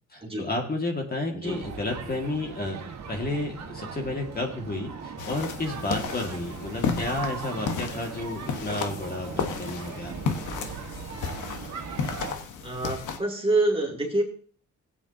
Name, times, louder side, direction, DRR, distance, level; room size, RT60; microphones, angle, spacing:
voice 1, 0.1-2.8 3.1-10.4, left 2 dB, 30° left, 1 dB, 2.0 m, -31 dB
sound 1, 1.4-12.3, right 6 dB, 60° right, 1.6 m, -39 dB
sound 2, 5.2-13.2, left 6 dB, 80° left, 1.4 m, -33 dB
voice 2, 12.6-14.2, right 2 dB, 20° right, 0 dB, 2.9 m, -26 dB
15.5 x 8.5 x 2.8 m, 0.42 s
cardioid pair, 90°, 30 cm